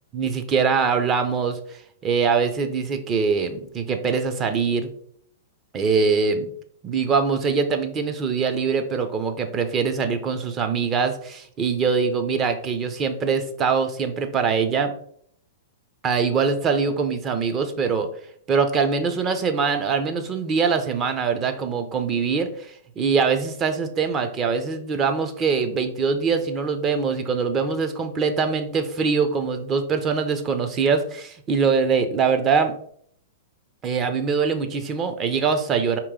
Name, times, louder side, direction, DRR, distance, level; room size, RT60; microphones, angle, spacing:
voice 1, 0.1-4.9 5.7-6.5 6.8-14.9 16.0-18.1 18.5-32.7 33.8-36.0, right 5 dB, 25° right, 7 dB, 0.6 m, -23 dB
4.8 x 3.0 x 3.7 m, 0.63 s
hypercardioid pair, 135°, 0 cm